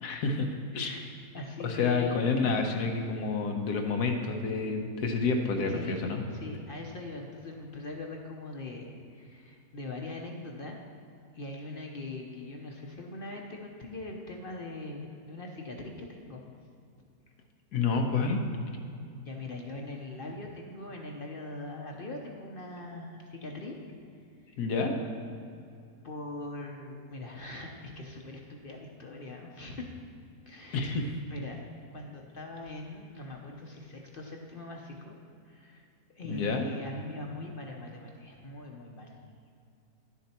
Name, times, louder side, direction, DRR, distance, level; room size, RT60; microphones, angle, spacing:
voice 1, 0.0-0.5 0.7-0.9 1.6-6.2 17.7-18.4 24.6-24.9 30.7-31.1 36.3-36.7, left 4 dB, 85° left, 3 dB, 1.5 m, -29 dB
voice 2, 1.3-2.4 5.7-10.8 11.3-16.4 19.2-23.8 24.5-24.6 26.0-29.9 30.4-31.6 31.9-35.2 35.4-35.8 36.2-39.1, left 2 dB, 45° left, 1 dB, 0.8 m, -41 dB
11.0 x 7.1 x 4.3 m, 2.5 s
omnidirectional pair, 1.6 m